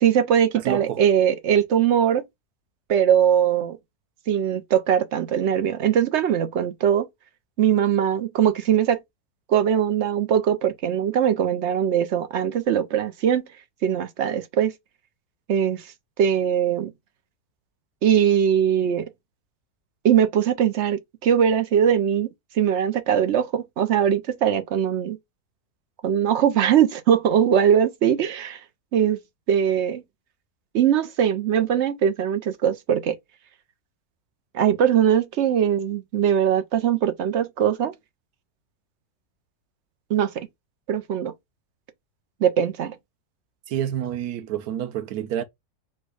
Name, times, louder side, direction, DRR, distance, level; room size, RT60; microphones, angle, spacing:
voice 1, 0.0-2.2 2.9-3.8 4.3-7.1 7.6-9.0 9.5-13.5 13.8-14.7 15.5-15.9 16.2-16.9 18.0-19.1 20.0-22.3 22.5-25.2 26.0-28.6 28.9-29.2 29.5-30.0 30.7-33.2 34.5-37.9 40.1-40.5 40.9-41.3 42.4-43.0, right 9 dB, 60° right, 0.8 m, -21 dB
voice 2, 0.6-1.0 43.7-45.4, right 10 dB, 85° right, 1.2 m, -28 dB
4.5 x 2.3 x 4.7 m
omnidirectional pair, 1.6 m